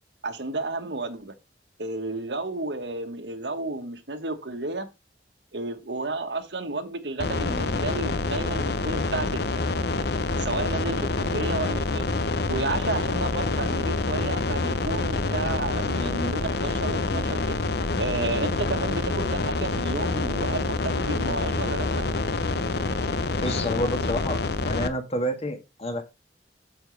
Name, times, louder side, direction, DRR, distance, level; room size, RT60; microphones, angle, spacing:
voice 1, 0.2-1.3 1.8-4.9 5.5-9.4 10.4-12.1 12.5-17.6 18.0-22.1, right 2 dB, 80° right, 1.6 m, -32 dB
sound 1, 7.2-24.9, left 3 dB, 65° left, 0.9 m, -27 dB
voice 2, 23.4-26.0, equal, 35° left, 1.8 m, -29 dB
9.0 x 7.2 x 3.3 m
head